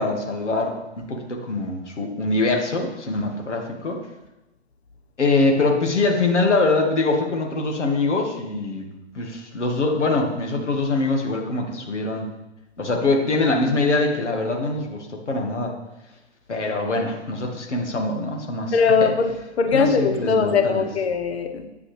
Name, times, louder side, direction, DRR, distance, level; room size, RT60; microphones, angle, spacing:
voice 1, 0.0-4.0 5.2-8.9 9.1-12.3 12.8-15.8 16.5-19.1 19.7-20.9, left 3 dB, 85° left, 2 dB, 1.8 m, -23 dB
voice 2, 18.7-21.7, left 5 dB, 65° left, 6 dB, 1.3 m, -20 dB
9.3 x 7.5 x 3.4 m, 1.0 s
hypercardioid pair, 130°, 34 cm